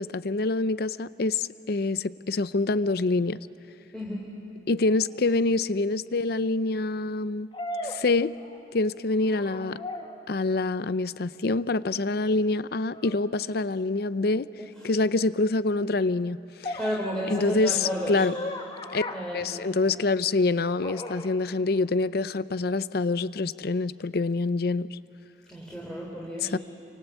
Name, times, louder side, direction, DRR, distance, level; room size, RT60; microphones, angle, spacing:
voice 1, 0.0-3.4 4.7-7.5 7.8-8.4 8.7-9.8 10.3-14.5 14.8-16.8 17.3-18.3 18.9-19.0 19.3-25.0 26.4-26.6, left 3 dB, 60° left, 15 dB, 0.6 m, -26 dB
voice 2, 3.9-4.3 14.6-14.9 16.7-18.3 19.1-19.5 25.5-26.5, equal, 5° left, -5 dB, 3.4 m, -32 dB
sound 1, 5.1-5.2 7.5-8.8 9.2-10.3 12.9-13.2 16.6-20.1 20.8-21.4, left 1 dB, 30° left, 1.5 m, -38 dB
28.0 x 25.5 x 8.2 m, 2.6 s
head